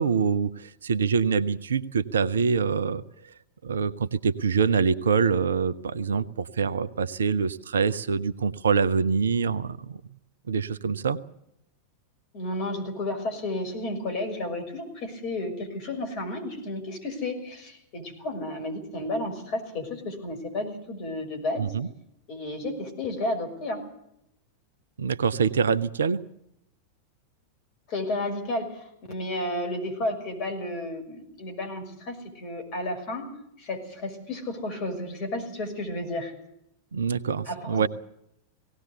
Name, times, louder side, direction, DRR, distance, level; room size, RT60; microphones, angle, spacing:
voice 1, 0.0-3.0 3.6-9.9 10.5-11.2 21.6-21.9 25.0-26.2 36.9-37.9, right 6 dB, 70° right, 16 dB, 0.8 m, -25 dB
voice 2, 12.3-21.7 22.3-23.8 27.9-33.3 33.6-36.3 37.5-37.9, left 1 dB, 40° left, 5 dB, 6.1 m, -32 dB
18.0 x 18.0 x 8.1 m, 0.79 s
figure-of-eight pair, 90°, 0 cm